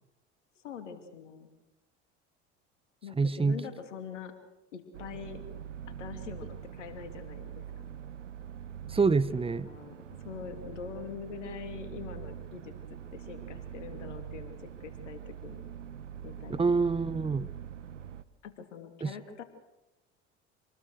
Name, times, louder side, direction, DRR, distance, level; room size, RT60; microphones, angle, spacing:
voice 1, 0.6-1.5 3.0-4.3 4.7-5.4 5.9-7.6 9.5-9.9 10.2-12.7 13.1-14.6 14.8-15.6 16.2-16.6 16.9-17.0 18.4-19.4, left 7 dB, 85° left, 8 dB, 2.8 m, -43 dB
voice 2, 3.2-3.6 8.9-9.7 16.6-17.5 19.0-19.1, right 4 dB, 15° right, 16 dB, 1.1 m, -26 dB
sound 1, 4.9-18.2, right 9 dB, 90° right, 1.1 m, -43 dB
27.0 x 20.5 x 6.4 m, 0.93 s
hypercardioid pair, 70°, 36 cm